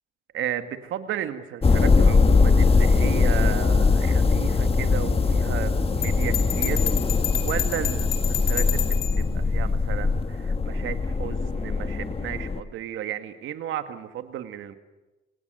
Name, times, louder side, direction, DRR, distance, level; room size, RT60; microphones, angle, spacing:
voice 1, 0.3-6.9 7.4-14.8, right 11 dB, 80° right, 9 dB, 2.0 m, -34 dB
sound 1, 1.6-12.6, left 4 dB, 30° left, 1.6 m, -21 dB
Bell, 6.0-9.2, left 10 dB, 75° left, 3.7 m, -30 dB
26.0 x 17.5 x 9.2 m, 1.1 s
cardioid pair, 90°, 20 cm